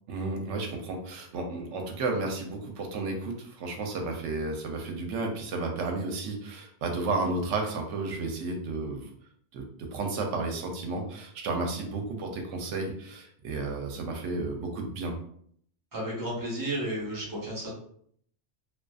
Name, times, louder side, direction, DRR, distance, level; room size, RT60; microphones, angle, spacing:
voice 1, 0.1-9.1 9.5-9.6 9.9-15.1, right 3 dB, 80° right, 3 dB, 0.9 m, -32 dB
voice 2, 15.9-17.7, right 1 dB, 20° right, -5 dB, 0.8 m, -32 dB
2.5 x 2.4 x 2.3 m, 0.64 s
omnidirectional pair, 1.2 m